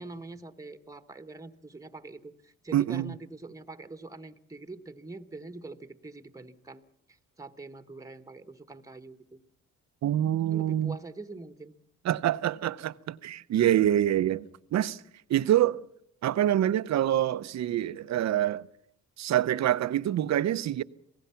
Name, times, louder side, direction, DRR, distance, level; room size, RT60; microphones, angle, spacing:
voice 1, 0.0-6.8 7.4-9.4 10.1-11.8, right 3 dB, 10° right, 1.4 m, -44 dB
voice 2, 2.7-3.1 10.0-10.9 12.0-15.0 15.3-15.8 16.2-18.7 19.2-20.8, right 12 dB, 65° right, 0.8 m, -26 dB
26.5 x 18.0 x 5.8 m
cardioid pair, 90°, 30 cm